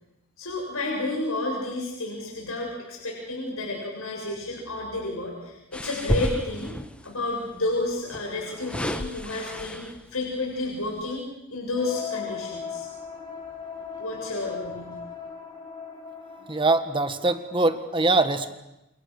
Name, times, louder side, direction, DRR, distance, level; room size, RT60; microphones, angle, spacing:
voice 1, 0.4-6.7 7.0-11.2 11.5-12.9 14.0-15.0, left 2 dB, 75° left, -1 dB, 7.4 m, -31 dB
sound 1, 5.7-7.1 8.1-10.1 10.7-10.9, equal, 5° left, 1.2 m, -31 dB
sound 2, 11.8-17.6, left 6 dB, 20° left, 7.7 m, -38 dB
voice 2, 16.5-18.5, right 2 dB, 25° right, 10 dB, 1.5 m, -23 dB
29.0 x 28.5 x 6.6 m, 0.89 s
head